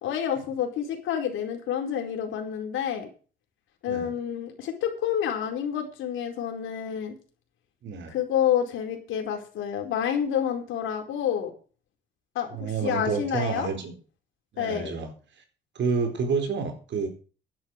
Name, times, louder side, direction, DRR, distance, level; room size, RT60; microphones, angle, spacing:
voice 1, 0.0-3.1 3.8-7.1 8.1-11.5 12.3-13.7 14.6-14.9, left 9 dB, 85° left, 3 dB, 4.6 m, -28 dB
voice 2, 7.8-8.1 12.5-14.0 14.5-15.1 15.7-17.1, right 5 dB, 65° right, 6 dB, 4.4 m, -29 dB
11.0 x 11.0 x 6.6 m, 0.37 s
cardioid pair, 90°, 20 cm